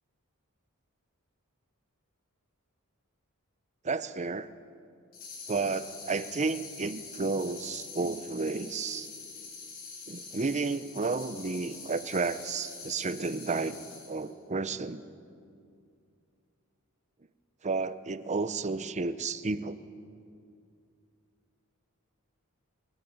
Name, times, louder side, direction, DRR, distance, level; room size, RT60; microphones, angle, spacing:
voice 1, 3.8-4.5 5.5-9.1 10.1-13.8 14.1-15.0 17.6-19.8, right 4 dB, 30° right, 13 dB, 0.7 m, -32 dB
sound 1, 5.1-14.3, left 4 dB, 40° left, 7.4 m, -45 dB
29.5 x 12.0 x 8.9 m, 2.5 s
head